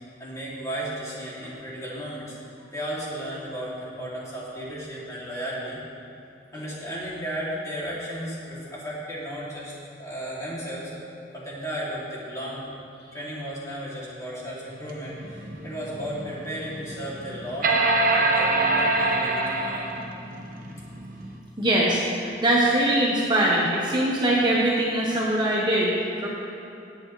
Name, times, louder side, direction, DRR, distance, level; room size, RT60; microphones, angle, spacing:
voice 1, 0.2-2.4 2.7-5.8 6.5-10.9 11.3-12.8 13.1-19.9, equal, 20° left, -7 dB, 2.6 m, -34 dB
sound 1, 14.9-21.4, right 2 dB, 50° right, 1.0 m, -25 dB
voice 2, 21.6-26.3, right 1 dB, 25° right, -4 dB, 1.1 m, -22 dB
18.5 x 8.5 x 3.2 m, 2.8 s
head